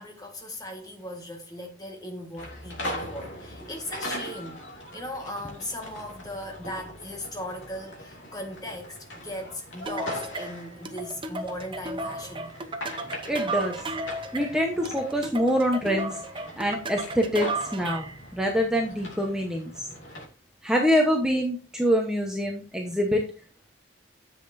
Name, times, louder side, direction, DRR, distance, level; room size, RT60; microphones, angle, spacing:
voice 1, 0.0-12.5, left 1 dB, 20° left, 1.6 m, -38 dB
sound 1, 2.4-20.3, left 1 dB, 75° left, 2.6 m, -41 dB
sound 2, 9.9-18.2, right 2 dB, 25° right, 0.8 m, -34 dB
voice 2, 13.3-13.8 14.3-16.2 16.6-17.5 17.7-19.9 20.6-23.2, equal, 5° right, 1.0 m, -25 dB
10.0 x 7.7 x 2.7 m
head